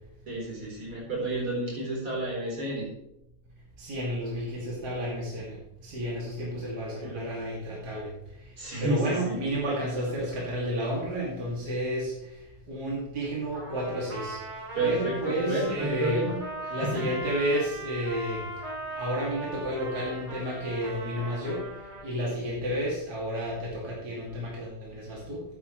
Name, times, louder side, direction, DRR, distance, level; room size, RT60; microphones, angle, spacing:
voice 1, 0.3-2.9 7.0-7.2 8.6-9.4 14.8-16.4 16.8-17.0, right 2 dB, 75° right, -4 dB, 5.6 m, -30 dB
voice 2, 3.8-8.1 8.8-12.3 12.7-14.4 14.8-16.3 16.7-18.5 19.0-21.7 22.0-25.4, equal, 45° right, -5 dB, 3.3 m, -31 dB
Trumpet, 13.5-22.1, right 1 dB, 30° right, 3.6 m, -39 dB
14.0 x 9.7 x 3.3 m, 0.84 s
omnidirectional pair, 2.4 m